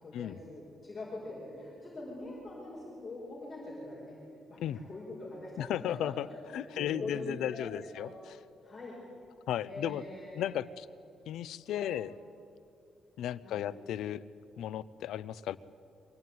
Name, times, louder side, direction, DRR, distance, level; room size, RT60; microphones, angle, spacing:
voice 1, 0.0-4.2 4.5-8.1 8.6-9.0 9.7-10.5 11.7-11.9 13.4-13.6, left 2 dB, 20° left, -6 dB, 5.4 m, -43 dB
voice 2, 5.6-6.3 6.5-8.1 9.5-10.0 10.3-10.9 11.3-12.1 13.2-14.2 14.6-15.6, left 11 dB, 85° left, 16 dB, 0.6 m, -35 dB
24.0 x 16.5 x 9.3 m, 2.4 s
cardioid pair, 180°, 0 cm